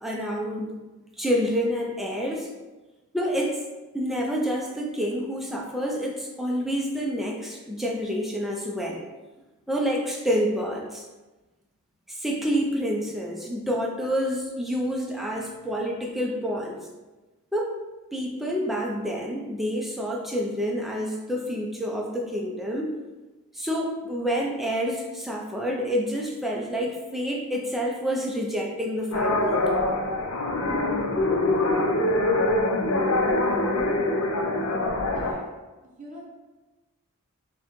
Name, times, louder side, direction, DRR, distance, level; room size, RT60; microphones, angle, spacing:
voice 1, 0.0-0.8 1.2-2.5 3.1-3.6 3.9-9.1 9.7-11.1 12.1-16.9 17.5-17.8 18.1-22.9 23.5-29.6, equal, ahead, -2 dB, 0.4 m, -28 dB
sound 1, 29.1-35.3, left 2 dB, 75° left, 0.5 m, -24 dB
voice 2, 35.1-35.5 36.0-36.3, equal, 35° right, -2 dB, 0.8 m, -42 dB
5.8 x 2.2 x 3.0 m, 1.2 s
head